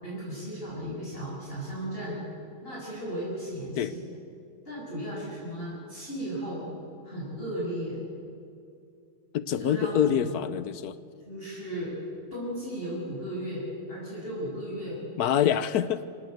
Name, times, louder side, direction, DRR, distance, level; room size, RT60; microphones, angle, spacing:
voice 1, 0.0-2.2 2.6-4.0 4.7-6.6 7.0-8.0 9.6-10.3 11.2-11.9 12.3-15.0, equal, 25° left, -7 dB, 7.0 m, -35 dB
voice 2, 9.3-11.0 15.2-16.1, left 9 dB, 65° left, 14 dB, 0.9 m, -26 dB
26.0 x 18.5 x 8.0 m, 2.4 s
omnidirectional pair, 2.3 m